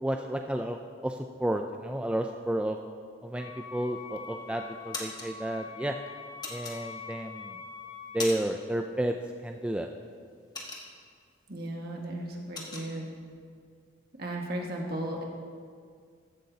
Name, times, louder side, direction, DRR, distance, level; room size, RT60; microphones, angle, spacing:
voice 1, 0.0-0.8 1.0-2.8 3.2-6.0 6.5-7.5 8.1-9.1 9.4-9.9, right 1 dB, 5° right, 4 dB, 0.3 m, -31 dB
Wind instrument woodwind instrument, 3.3-8.2, left 5 dB, 65° left, 3.1 m, -44 dB
sound 1, 3.9-4.3 4.7-5.3 6.4-7.3 7.7-8.7 8.9-9.2 9.6-11.3 11.7-11.8 12.1-12.9, left 3 dB, 20° left, 1.3 m, -39 dB
voice 2, 11.5-13.1 14.2-15.2, right 1 dB, 50° right, 0 dB, 1.7 m, -35 dB
15.0 x 11.5 x 2.8 m, 2.1 s
head